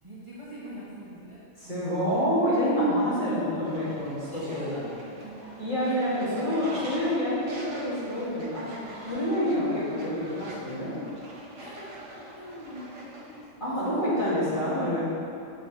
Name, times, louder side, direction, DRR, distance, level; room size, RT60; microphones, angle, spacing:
voice 1, 0.0-2.0 4.3-6.0 6.4-6.6 11.6-13.9 14.2-14.7, right 1 dB, 25° right, -10 dB, 1.4 m, -44 dB
voice 2, 1.6-4.7 5.6-8.8 9.1-11.0 13.6-15.0, equal, 35° left, -10 dB, 2.3 m, -27 dB
Fowl, 3.6-13.4, right 1 dB, 60° right, 1.3 m, -45 dB
8.7 x 6.8 x 3.2 m, 2.6 s
omnidirectional pair, 1.4 m